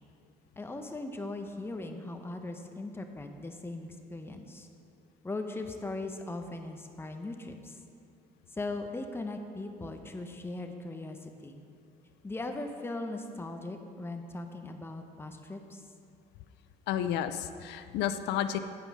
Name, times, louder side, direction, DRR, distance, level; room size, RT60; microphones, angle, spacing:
voice 1, 0.6-4.7 5.2-7.8 8.5-11.6 12.2-15.8, left 2 dB, 15° left, 5 dB, 0.8 m, -39 dB
voice 2, 16.9-18.6, left 10 dB, 85° left, 10 dB, 0.5 m, -31 dB
9.4 x 5.1 x 6.1 m, 2.4 s
cardioid pair, 110°, 17 cm